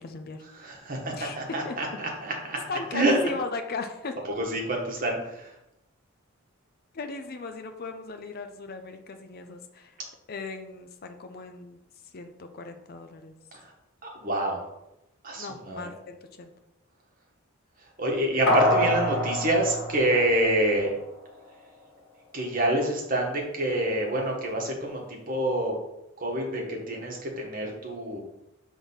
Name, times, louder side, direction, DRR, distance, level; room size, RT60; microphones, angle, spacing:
voice 1, 0.0-0.4 1.1-1.8 2.6-4.2 6.9-10.0 10.3-13.3 15.4-16.5, left 4 dB, 45° left, 7 dB, 0.5 m, -37 dB
voice 2, 0.5-2.6 2.9-3.2 4.4-5.5 13.5-13.7 14.0-14.6 15.2-15.9 18.0-20.9 22.3-25.7 26.2-28.2, right 1 dB, 40° right, 0 dB, 1.5 m, -27 dB
sound 1, 18.5-21.0 21.4-21.5, left 1 dB, 60° left, 2.1 m, -26 dB
6.1 x 3.6 x 5.5 m, 0.89 s
head